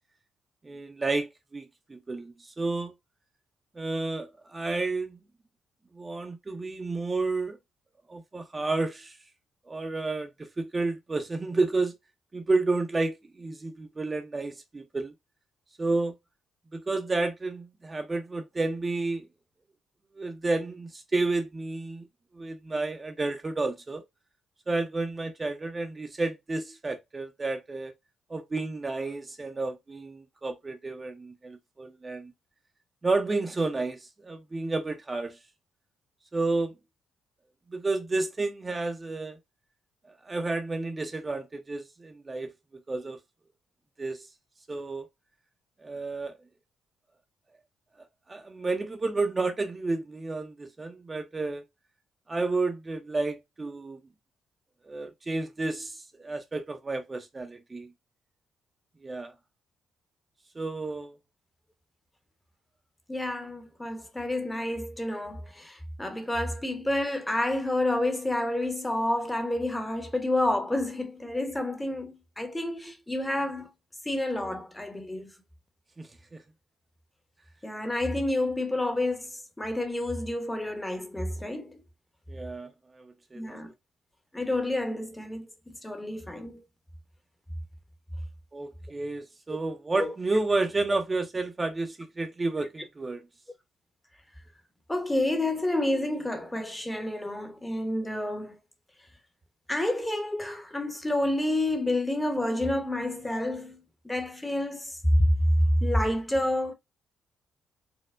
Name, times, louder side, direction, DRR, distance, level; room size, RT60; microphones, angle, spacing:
voice 1, 0.6-1.6 1.9-2.9 3.7-5.2 5.9-7.6 8.1-9.2 9.7-11.9 12.3-15.1 15.8-16.1 16.7-19.3 20.2-22.1 22.3-24.0 24.7-27.9 28.3-32.3 33.0-35.4 36.3-36.7 37.7-39.4 40.2-43.2 44.0-44.3 44.7-45.0 45.8-46.3 48.3-51.6 52.3-54.0 54.8-57.9 59.0-59.3 60.6-61.2 76.0-76.4 82.3-83.6 88.5-93.3, right 3 dB, 25° right, 0.5 m, -31 dB
voice 2, 63.1-73.7 74.0-75.3 77.6-81.8 83.3-83.7 84.3-86.6 90.0-90.1 90.9-91.0 94.9-98.6 99.7-105.3 105.8-106.7, left 1 dB, 10° left, 0.7 m, -29 dB
4.3 x 2.1 x 2.4 m
cardioid pair, 90°, 0 cm